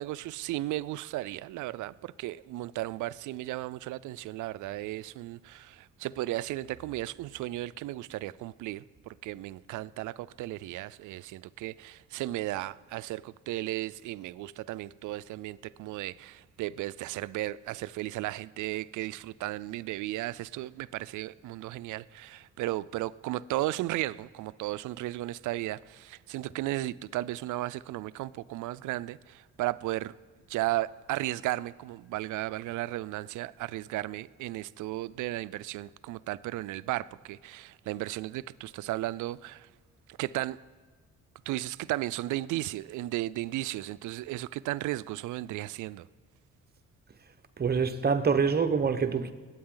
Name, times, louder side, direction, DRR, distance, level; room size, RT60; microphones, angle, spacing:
voice 1, 0.0-30.1 30.5-39.7 40.1-40.6 41.5-46.1, right 16 dB, 80° right, 0.4 m, -35 dB
voice 2, 47.6-49.3, right 5 dB, 30° right, 1.0 m, -25 dB
21.5 x 8.9 x 3.9 m
cardioid pair, 90°, 30 cm